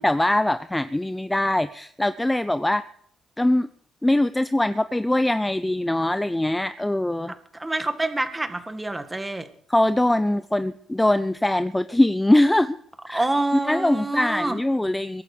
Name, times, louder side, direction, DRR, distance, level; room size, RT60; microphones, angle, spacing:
voice 1, 0.0-2.8 3.4-3.7 4.0-7.3 9.7-12.8 13.1-13.3 13.6-15.2, left 1 dB, 10° left, 13 dB, 0.5 m, -22 dB
voice 2, 7.5-9.5 13.1-14.6, right 2 dB, 15° right, 9 dB, 1.7 m, -27 dB
22.5 x 12.0 x 4.9 m, 0.63 s
cardioid pair, 90°, 0 cm